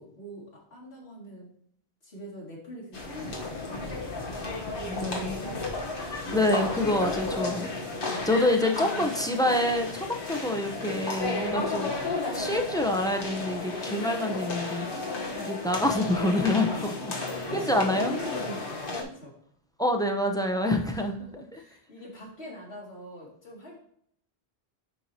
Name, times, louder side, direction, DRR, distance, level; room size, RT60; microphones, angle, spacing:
voice 1, 0.0-1.5 2.0-3.8 4.8-5.6 6.8-7.7 8.4-9.1 11.5-11.8 16.4-19.3 20.9-23.8, equal, 70° left, -4 dB, 2.6 m, -42 dB
sound 1, 2.9-19.0, left 3 dB, 55° left, 1.3 m, -33 dB
voice 2, 4.9-5.4 6.3-7.7 8.2-11.9 12.3-14.9 15.4-16.9 17.5-18.1 19.8-21.1 21.5-21.6, left 1 dB, 5° left, 4 dB, 0.5 m, -26 dB
9.9 x 4.5 x 2.8 m, 0.67 s
omnidirectional pair, 1.1 m